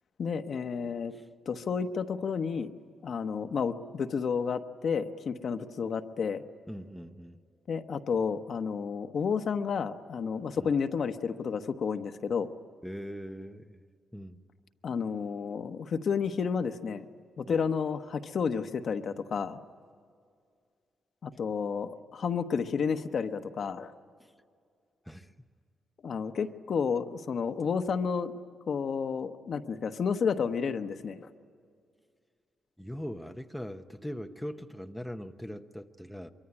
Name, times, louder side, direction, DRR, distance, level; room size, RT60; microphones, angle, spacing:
voice 1, 0.2-1.1 1.5-2.7 3.0-6.4 7.7-12.5 14.8-17.1 17.4-19.6 21.2-23.9 26.0-28.3 28.7-31.3, left 6 dB, 50° left, 8 dB, 1.1 m, -31 dB
voice 2, 6.7-7.4 10.6-10.7 12.8-13.8 14.1-14.4 17.5-17.7 24.2-24.3 25.1-25.3 32.8-36.3, equal, ahead, 6 dB, 0.9 m, -41 dB
24.0 x 24.0 x 9.9 m, 2.2 s
cardioid pair, 135°, 0 cm